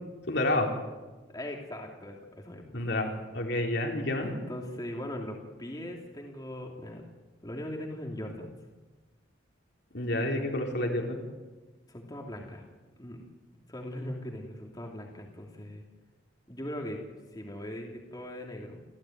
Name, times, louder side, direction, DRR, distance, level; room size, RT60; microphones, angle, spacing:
voice 1, 0.3-0.7 2.7-4.3 9.9-11.2, left 1 dB, 60° left, 1 dB, 4.1 m, -29 dB
voice 2, 1.3-2.8 4.2-7.0 7.4-8.5 11.9-12.6 13.0-13.2 13.7-15.8 16.5-17.0 17.3-18.8, left 1 dB, 20° left, 0 dB, 3.0 m, -40 dB
29.0 x 15.0 x 9.3 m, 1.2 s
head